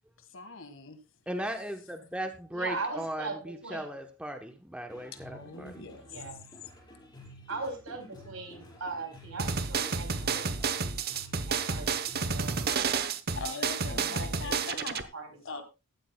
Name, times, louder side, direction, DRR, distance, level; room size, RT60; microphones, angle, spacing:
voice 1, 0.3-1.0 5.3-6.0 13.4-15.1 15.5-15.6, left 4 dB, 60° left, 1.7 m, -41 dB
voice 2, 1.3-5.9, right 1 dB, 5° right, 0.9 m, -37 dB
voice 3, 2.5-3.9 6.0-6.4 7.5-10.8 11.5-11.9 12.2-12.6 13.4-14.8 15.1-15.6, right 3 dB, 75° right, 4.2 m, -40 dB
sound 1, 4.9-12.6, equal, 20° left, 4.4 m, -51 dB
sound 2, 9.4-15.0, right 5 dB, 45° right, 0.9 m, -30 dB
15.0 x 12.5 x 2.3 m
head